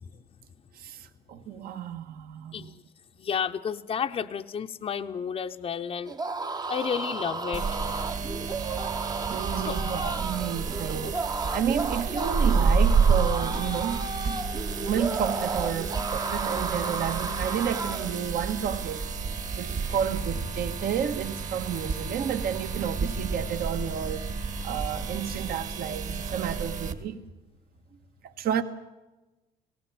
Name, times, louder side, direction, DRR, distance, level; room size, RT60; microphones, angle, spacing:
voice 1, 0.7-2.8 9.3-14.0 14.8-19.1 19.6-24.3 24.6-27.2 28.2-28.6, right 8 dB, 65° right, 1.6 m, -31 dB
voice 2, 3.2-6.1 6.7-7.8 9.6-9.8, left 7 dB, 35° left, 0.7 m, -31 dB
sound 1, 6.1-18.2, right 4 dB, 25° right, 0.8 m, -33 dB
sound 2, 7.5-26.9, right 5 dB, 45° right, 2.1 m, -30 dB
18.0 x 18.0 x 8.6 m
cardioid pair, 110°, 17 cm